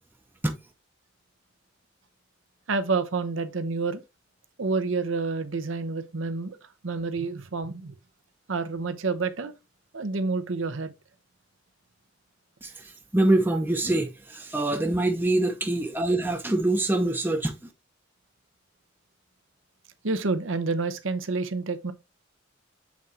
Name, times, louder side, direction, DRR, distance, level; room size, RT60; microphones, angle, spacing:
voice 1, 2.7-4.0 4.6-6.6 6.8-8.0 8.5-9.5 9.9-10.9 20.0-21.9, right 4 dB, 80° right, 0.8 m, -28 dB
voice 2, 12.6-17.5, right 2 dB, 10° right, 0.6 m, -25 dB
7.3 x 3.7 x 4.3 m
head